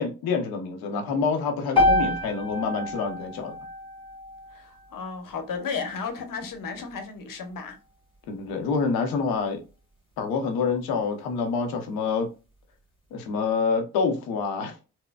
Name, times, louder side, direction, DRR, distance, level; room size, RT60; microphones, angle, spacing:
voice 1, 0.0-3.6 8.3-9.6 10.2-12.3 13.1-14.8, left 5 dB, 90° left, 0.7 m, -27 dB
sound 1, 1.8-5.9, left 1 dB, 15° left, 1.5 m, -27 dB
voice 2, 4.5-7.8, left 5 dB, 65° left, 1.0 m, -34 dB
4.1 x 2.1 x 2.2 m
supercardioid pair, 50°, 36 cm